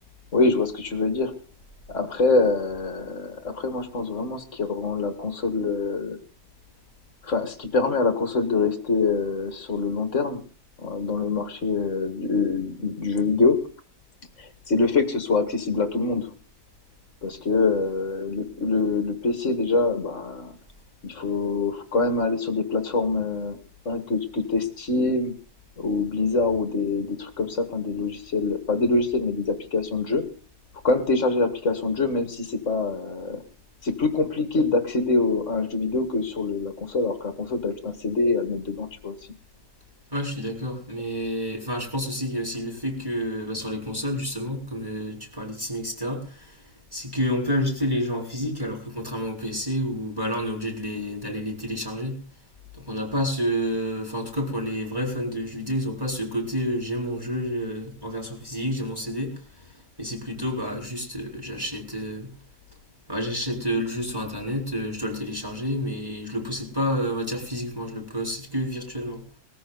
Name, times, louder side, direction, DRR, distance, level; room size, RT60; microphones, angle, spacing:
voice 1, 0.3-1.3 1.9-6.2 7.2-10.4 10.8-13.6 14.4-16.3 17.2-20.5 21.0-23.6 23.8-25.3 25.8-30.2 30.8-33.4 33.8-39.1, left 3 dB, 30° left, 7 dB, 1.6 m, -25 dB
voice 2, 40.1-52.2 52.8-59.4 60.0-62.3 63.1-69.2, equal, 5° right, 2 dB, 3.8 m, -29 dB
20.0 x 14.5 x 4.0 m, 0.40 s
omnidirectional pair, 3.4 m